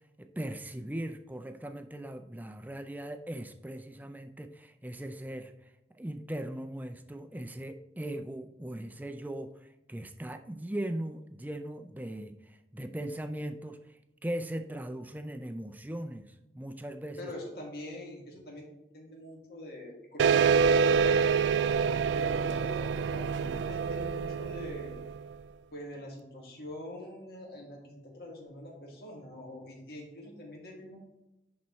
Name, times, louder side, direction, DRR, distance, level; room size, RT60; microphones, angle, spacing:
voice 1, 0.2-17.3, right 1 dB, 10° right, 8 dB, 0.4 m, -39 dB
voice 2, 17.2-18.7 18.9-21.3 22.1-25.0 25.7-31.0, left 1 dB, 60° left, -1 dB, 1.9 m, -44 dB
sound 1, 20.2-25.3, right 6 dB, 85° right, 0.3 m, -26 dB
10.5 x 4.1 x 3.1 m, 0.96 s
head